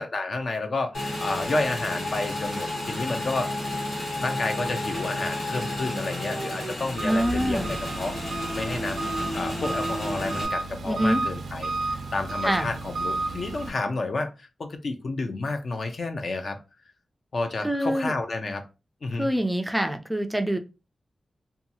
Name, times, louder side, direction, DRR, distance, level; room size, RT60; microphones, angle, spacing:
voice 1, 0.0-3.7 4.2-9.1 9.3-16.6 17.3-18.6 19.0-19.3, left 3 dB, 55° left, 7 dB, 0.5 m, -30 dB
Motorcycle / Engine, 0.9-10.5, left 1 dB, 85° left, 1.5 m, -32 dB
Engine, 6.9-13.7, right 3 dB, 85° right, 0.3 m, -32 dB
voice 2, 7.0-7.7 10.9-11.2 12.4-12.7 17.6-18.1 19.2-20.6, equal, 5° right, 6 dB, 0.3 m, -25 dB
2.7 x 2.3 x 2.7 m, 0.30 s
wide cardioid pair, 125°, 0 cm